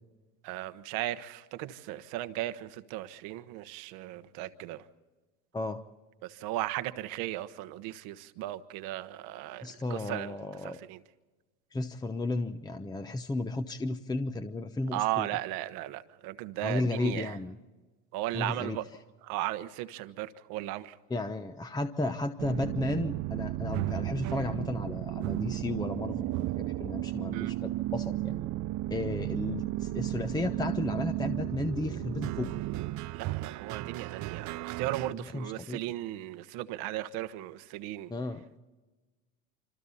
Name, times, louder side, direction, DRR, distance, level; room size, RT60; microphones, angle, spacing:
voice 1, 0.4-4.8 6.2-10.4 10.6-11.0 14.9-17.4 18.1-18.8 19.2-21.0 27.3-27.5 33.1-38.1, right 15 dB, 65° right, 1.3 m, -36 dB
voice 2, 9.6-10.8 11.7-15.3 16.6-17.5 18.3-18.8 21.1-28.4 28.9-32.5 35.3-35.8 38.1-38.5, left 2 dB, 10° left, 0.9 m, -34 dB
sound 1, 22.4-35.1, right 16 dB, 45° right, 0.6 m, -34 dB
26.5 x 26.5 x 4.1 m
supercardioid pair, 100°, 40 cm